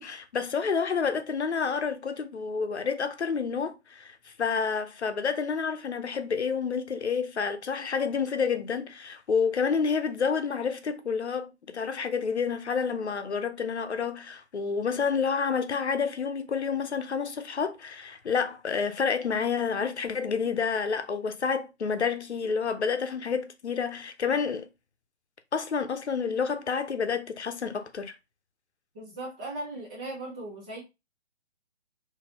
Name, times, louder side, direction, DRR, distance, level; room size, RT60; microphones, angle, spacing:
voice 1, 0.0-24.7 25.5-28.1, left 6 dB, 75° left, 0.8 m, -29 dB
voice 2, 28.9-30.8, right 2 dB, 10° right, 0.4 m, -38 dB
3.9 x 2.8 x 2.8 m
figure-of-eight pair, 135°, 34 cm